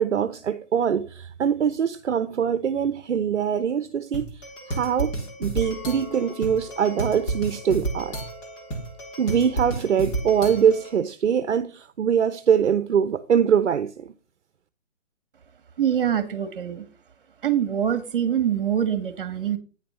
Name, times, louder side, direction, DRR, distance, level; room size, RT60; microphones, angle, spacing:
voice 1, 0.0-4.3 4.7-5.1 5.4-8.2 9.2-14.1, right 8 dB, 65° right, 0.9 m, -23 dB
sound 1, 4.1-11.0, right 2 dB, 10° left, 1.2 m, -32 dB
Chink clink, 5.6-10.8, left 12 dB, 45° left, 2.7 m, -47 dB
voice 2, 15.8-16.8 17.4-19.6, right 9 dB, 45° right, 1.7 m, -24 dB
9.7 x 5.9 x 5.6 m
hypercardioid pair, 165°, 38 cm